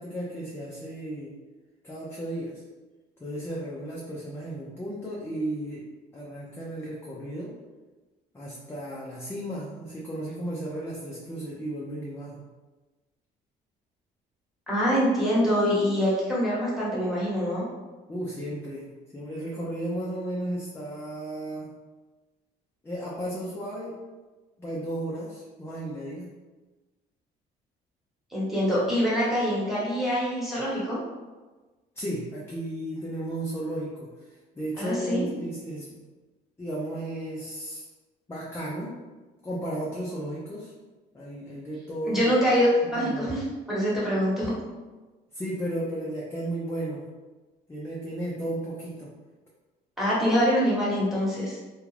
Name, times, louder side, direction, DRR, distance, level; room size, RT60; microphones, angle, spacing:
voice 1, 0.0-1.3 1.8-2.6 3.2-5.8 6.1-7.5 8.3-12.5 18.1-21.7 22.8-24.0 24.6-26.3 32.0-36.0 36.6-37.8 38.3-38.9 39.4-40.7 41.1-42.3 42.9-43.3 45.3-47.1 47.7-49.1, right 1 dB, 15° left, -5 dB, 0.5 m, -34 dB
voice 2, 14.7-17.6 28.3-31.0 34.8-35.2 42.1-43.4 43.7-44.5 50.0-51.6, equal, ahead, -8 dB, 1.1 m, -24 dB
2.4 x 2.2 x 3.2 m, 1.2 s
cardioid pair, 110°, 17 cm